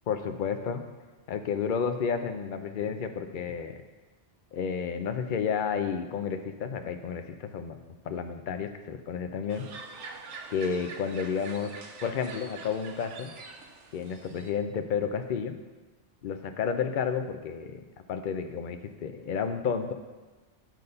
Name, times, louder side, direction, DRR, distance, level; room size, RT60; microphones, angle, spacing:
voice 1, 0.1-0.8 1.3-3.8 4.5-7.8 8.0-9.7 10.5-11.7 12.0-13.3 13.9-15.5 16.2-17.8 18.1-19.9, left 6 dB, 50° left, 7 dB, 0.7 m, -31 dB
sound 1, 9.5-14.5, right 4 dB, 90° right, 1.1 m, -45 dB
9.0 x 4.1 x 6.6 m, 1.3 s
omnidirectional pair, 1.2 m